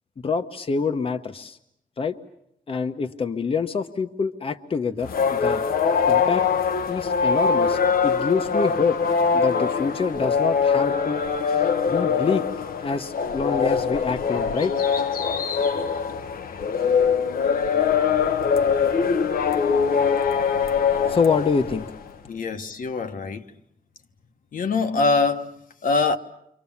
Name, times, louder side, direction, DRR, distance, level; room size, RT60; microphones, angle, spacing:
voice 1, 0.2-1.6 2.0-2.1 2.7-5.6 6.1-6.4 6.9-9.0 9.3-11.2 11.9-12.4 12.8-14.7 21.1-21.9, left 5 dB, 40° left, 1.0 m, -26 dB
sound 1, 5.0-22.0, left 6 dB, 85° left, 1.1 m, -22 dB
voice 2, 22.3-23.4 24.5-26.2, left 3 dB, 70° left, 1.3 m, -24 dB
29.5 x 25.0 x 7.2 m
wide cardioid pair, 140°, 15 cm